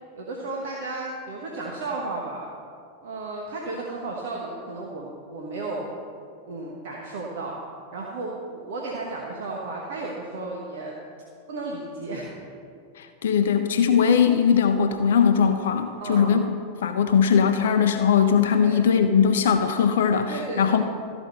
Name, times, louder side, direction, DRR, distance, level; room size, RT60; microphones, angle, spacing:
voice 1, 0.2-2.4 3.0-5.9 6.5-7.6 7.9-10.9 11.5-12.3 16.0-16.4 18.6-18.8 20.3-20.8, right 3 dB, 55° right, -2 dB, 1.3 m, -33 dB
voice 2, 13.0-16.4 16.8-20.8, left 7 dB, 60° left, 7 dB, 0.6 m, -20 dB
13.5 x 5.0 x 6.7 m, 2.4 s
figure-of-eight pair, 90°, 0 cm